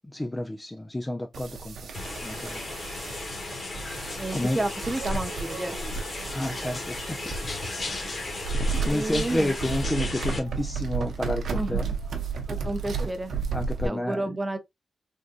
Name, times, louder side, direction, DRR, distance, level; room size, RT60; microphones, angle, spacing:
voice 1, 0.1-1.9 2.2-2.6 4.0-4.6 6.3-7.2 7.9-8.2 8.8-11.9 13.0-13.1 13.5-14.4, left 1 dB, 15° left, 0.4 m, -30 dB
sound 1, 1.3-13.9, right 4 dB, 75° right, 0.7 m, -33 dB
sound 2, 1.9-10.4, left 2 dB, 40° left, 1.2 m, -35 dB
voice 2, 4.2-5.8 8.8-9.5 11.5-11.9 12.5-13.3 13.8-14.6, right 2 dB, 15° right, 0.7 m, -31 dB
3.6 x 2.5 x 2.4 m
wide cardioid pair, 110°, 0 cm